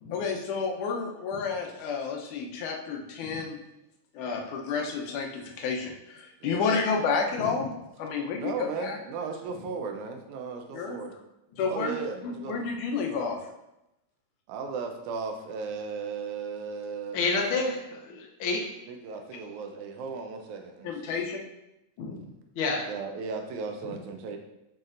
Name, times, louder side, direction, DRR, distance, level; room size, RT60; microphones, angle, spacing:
voice 1, 0.1-3.6 4.1-7.7 8.0-9.0 10.7-11.0 11.6-11.9 12.2-13.5 20.8-21.4, left 5 dB, 80° left, 1 dB, 2.3 m, -30 dB
voice 2, 6.4-6.9 8.4-11.1 11.7-12.6 13.1-13.2 14.5-17.2 18.9-21.2 22.9-24.4, right 5 dB, 80° right, 4 dB, 2.0 m, -36 dB
voice 3, 17.1-18.6 22.0-22.2 22.6-22.8, left 3 dB, 60° left, 0 dB, 1.4 m, -29 dB
6.5 x 6.0 x 2.5 m, 0.89 s
omnidirectional pair, 3.6 m